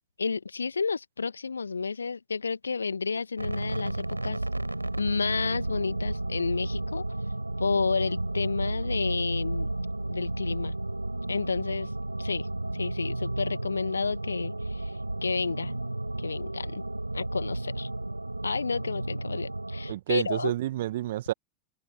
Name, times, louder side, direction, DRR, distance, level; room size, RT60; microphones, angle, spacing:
voice 1, 0.2-4.4 5.0-7.0 7.6-9.7 10.1-10.7 11.3-11.9 12.2-12.5 12.7-15.7 16.2-16.8 17.1-17.9 18.4-20.5, left 5 dB, 75° left, 1.9 m, -31 dB
sound 1, 3.4-19.9, right 2 dB, 85° right, 6.2 m, -32 dB
voice 2, 19.9-21.3, right 14 dB, 55° right, 1.4 m, -29 dB
figure-of-eight pair, 90°, 0 cm